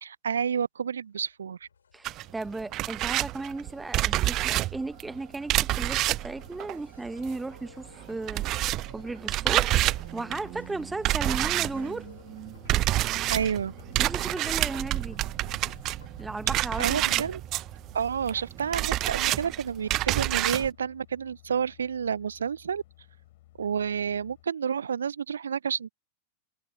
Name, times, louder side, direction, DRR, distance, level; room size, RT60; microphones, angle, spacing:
voice 1, 0.0-1.6 13.3-13.7 16.8-17.4 17.9-22.8 23.6-25.9, right 7 dB, 70° right, 0.9 m, -30 dB
sound 1, 1.3-17.4, left 6 dB, 70° left, 7.5 m, -53 dB
voice 2, 1.9-8.4 8.9-9.7 10.1-12.1 14.0-15.2 16.2-17.2, right 3 dB, 10° right, 1.3 m, -35 dB
sound 2, 2.0-7.6 7.8-20.7, right 16 dB, 35° right, 0.3 m, -28 dB
sound 3, 11.8-24.4, left 17 dB, 55° left, 8.0 m, -57 dB
figure-of-eight pair, 90°, 0 cm